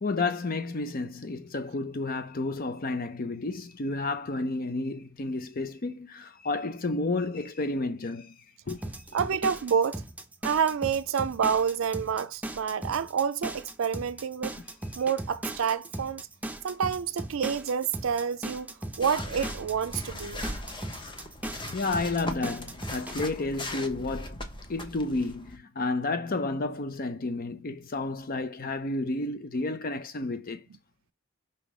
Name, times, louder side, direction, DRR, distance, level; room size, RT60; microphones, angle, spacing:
voice 1, 0.0-8.3 8.7-8.8 14.6-14.7 21.7-24.4 24.7-30.7, left 3 dB, 45° left, 0.6 m, -31 dB
sound 1, 8.7-23.2, right 1 dB, 10° right, 0.7 m, -38 dB
voice 2, 9.1-10.0 10.4-14.6 15.0-16.2 16.6-20.4, right 7 dB, 75° right, 0.4 m, -28 dB
sound 2, 19.0-25.6, left 1 dB, 25° left, 1.0 m, -39 dB
5.6 x 3.7 x 4.8 m
head